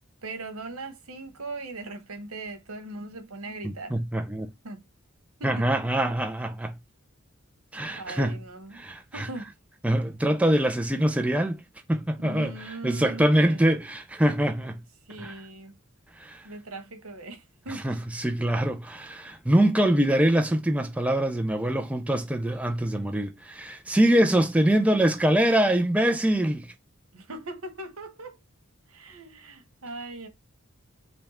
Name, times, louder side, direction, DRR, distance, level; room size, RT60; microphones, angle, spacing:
voice 1, 0.2-4.0 4.6-4.8 5.4-5.6 8.0-8.8 9.1-9.5 12.2-13.6 15.1-15.7 16.4-18.0 27.1-28.4 28.9-30.3, right 2 dB, 85° right, 1.3 m, -39 dB
voice 2, 3.6-4.5 5.4-6.8 7.7-8.4 8.7-9.3 9.8-11.6 11.9-14.8 15.2-15.3 16.2-16.5 17.7-26.7, right 1 dB, 5° right, 0.4 m, -24 dB
5.3 x 2.3 x 4.2 m
head